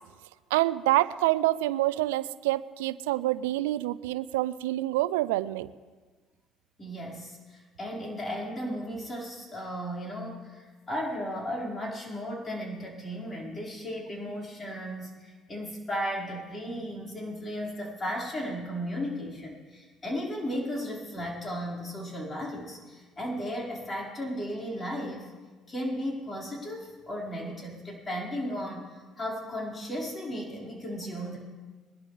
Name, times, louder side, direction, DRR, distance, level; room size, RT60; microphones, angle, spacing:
voice 1, 0.5-5.7, right 16 dB, 90° right, 17 dB, 0.3 m, -27 dB
voice 2, 6.8-25.3 25.7-31.4, equal, 30° left, -2 dB, 4.8 m, -35 dB
22.0 x 12.0 x 3.3 m, 1.4 s
supercardioid pair, 70°, 0 cm